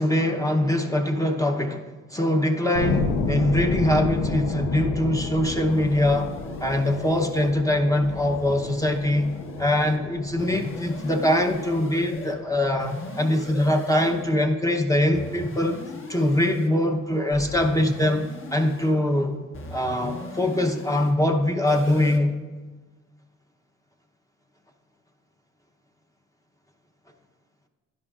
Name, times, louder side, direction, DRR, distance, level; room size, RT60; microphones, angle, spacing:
voice 1, 0.0-1.8 2.1-6.3 6.6-9.3 9.6-15.8 16.1-19.4 19.7-22.3, left 1 dB, 10° left, 3 dB, 0.8 m, -23 dB
sound 1, 2.7-13.5, left 4 dB, 90° left, 0.9 m, -31 dB
sound 2, 5.6-7.5 8.0-10.0 10.4-12.3 12.8-14.4 15.1-16.7 17.3-19.0 19.5-21.1 21.7-22.2, left 2 dB, 45° left, 1.4 m, -39 dB
11.0 x 10.5 x 2.5 m, 1.3 s
cardioid pair, 90°, 30 cm